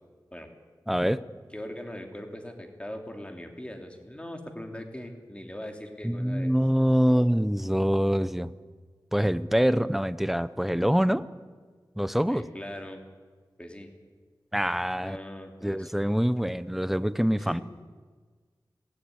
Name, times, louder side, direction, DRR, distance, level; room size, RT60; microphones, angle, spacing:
voice 1, 0.9-1.2 6.0-8.5 9.1-11.2 12.0-12.4 14.5-15.2 15.6-17.6, equal, 5° right, 15 dB, 0.7 m, -25 dB
voice 2, 1.5-6.5 7.1-7.3 12.3-13.0 13.6-13.9 15.0-15.9 17.4-17.6, left 1 dB, 15° left, 4 dB, 2.9 m, -40 dB
18.0 x 16.0 x 9.9 m, 1.5 s
wide cardioid pair, 95°, 8 cm